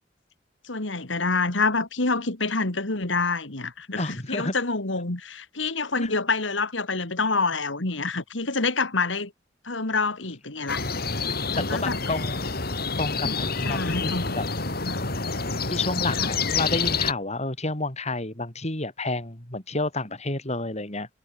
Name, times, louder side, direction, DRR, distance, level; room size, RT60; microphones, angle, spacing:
voice 1, 0.6-9.3 9.6-10.8 11.5-12.0 13.2-13.3 13.6-14.4 14.8-15.0 16.2-16.3, left 3 dB, 85° left, 2.7 m, -27 dB
voice 2, 4.0-4.5 6.0-6.1 11.6-12.5 13.0-14.5 15.7-21.1, left 2 dB, 35° left, 5.6 m, -30 dB
sound 1, 10.7-17.1, left 4 dB, 55° left, 4.1 m, -28 dB
head